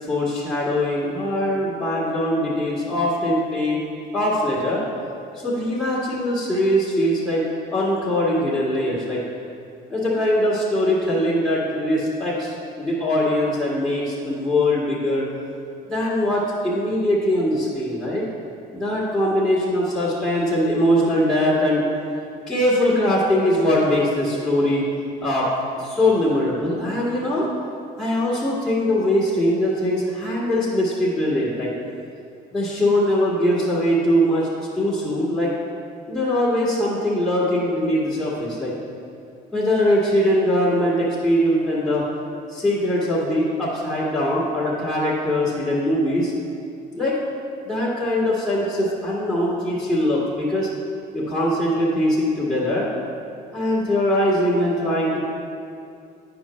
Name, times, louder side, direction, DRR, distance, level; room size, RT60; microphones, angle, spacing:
voice 1, 0.0-3.8 4.1-4.8 5.3-7.4 7.7-9.2 9.9-15.2 15.9-18.2 18.7-21.8 22.5-24.8 25.2-25.5 25.8-27.5 28.0-31.7 32.5-34.5 34.8-35.5 36.1-38.7 39.5-42.0 42.5-46.3 46.9-47.1 47.6-50.7 51.1-52.9 53.5-55.2, left 1 dB, 5° left, -10 dB, 1.8 m, -21 dB
9.2 x 5.8 x 3.1 m, 2.5 s
cardioid pair, 110°, 17 cm